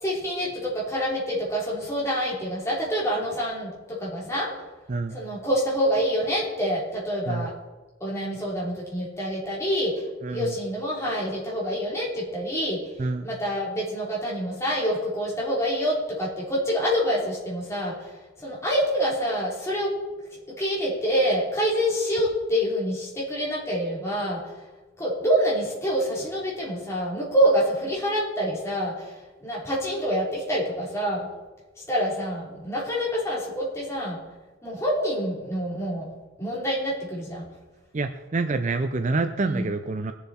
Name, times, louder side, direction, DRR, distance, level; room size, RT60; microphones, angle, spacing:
voice 1, 0.0-4.5 5.1-7.5 8.0-19.9 20.5-24.5 25.0-31.3 31.9-34.2 34.6-36.1 36.4-37.4 39.4-39.7, equal, 15° left, -5 dB, 3.3 m, -27 dB
voice 2, 37.9-40.1, right 3 dB, 35° right, 8 dB, 0.4 m, -27 dB
20.0 x 7.1 x 4.2 m, 1.2 s
head